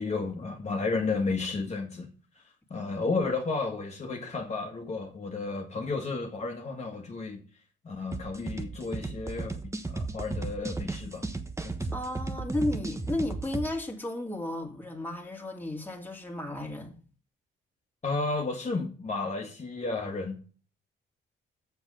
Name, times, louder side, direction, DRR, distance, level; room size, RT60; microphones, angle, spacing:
voice 1, 0.0-2.1 2.7-7.4 7.8-11.2 11.6-11.9 18.0-20.6, left 3 dB, 35° left, 1.7 m, -32 dB
sound 1, 8.1-13.7, right 3 dB, 15° right, 1.2 m, -35 dB
voice 2, 11.9-17.0, left 1 dB, 10° left, 2.4 m, -33 dB
7.3 x 6.3 x 7.6 m
cardioid pair, 90°, 20 cm